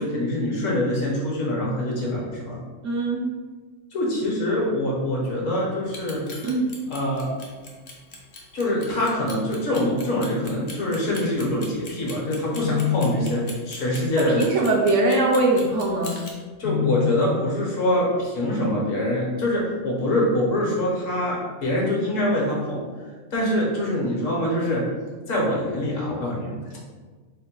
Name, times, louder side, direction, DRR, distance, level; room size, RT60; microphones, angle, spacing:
voice 1, 0.0-2.6 3.9-6.2 6.9-7.3 8.5-14.4 16.6-22.8 23.3-24.8 25.3-26.8, left 1 dB, 65° left, -4 dB, 1.4 m, -24 dB
voice 2, 2.8-3.3 6.4-6.7 14.2-16.2, right 2 dB, 65° right, -1 dB, 0.8 m, -21 dB
Clock, 5.8-16.3, left 3 dB, 45° left, 0.7 m, -40 dB
4.3 x 2.2 x 4.4 m, 1.4 s
omnidirectional pair, 1.5 m